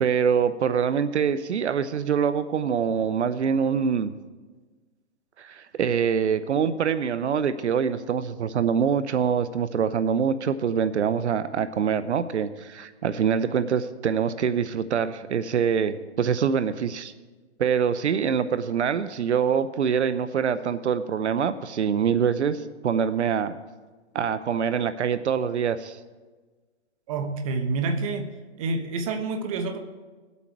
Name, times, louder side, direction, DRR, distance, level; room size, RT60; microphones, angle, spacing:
voice 1, 0.0-4.1 5.4-17.1 17.6-23.5 24.1-26.0, right 7 dB, 80° right, 12 dB, 0.7 m, -24 dB
voice 2, 27.1-28.3 28.6-29.8, right 3 dB, 30° right, 7 dB, 1.1 m, -28 dB
18.0 x 8.3 x 4.6 m, 1.3 s
hypercardioid pair, 155°, 34 cm